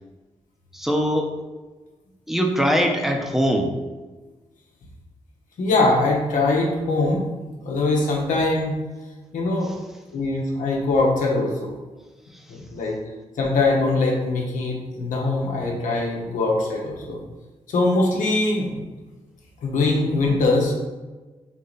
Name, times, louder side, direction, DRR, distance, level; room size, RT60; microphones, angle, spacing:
voice 1, 0.7-1.4 2.3-3.7, equal, ahead, 2 dB, 0.9 m, -21 dB
voice 2, 5.6-7.2 7.6-8.7 9.3-9.7 10.1-11.7 12.5-13.0 13.4-17.2 17.7-18.7 19.6-20.7, left 2 dB, 80° left, -1 dB, 1.0 m, -22 dB
4.0 x 3.0 x 4.0 m, 1.2 s
supercardioid pair, 45°, 13 cm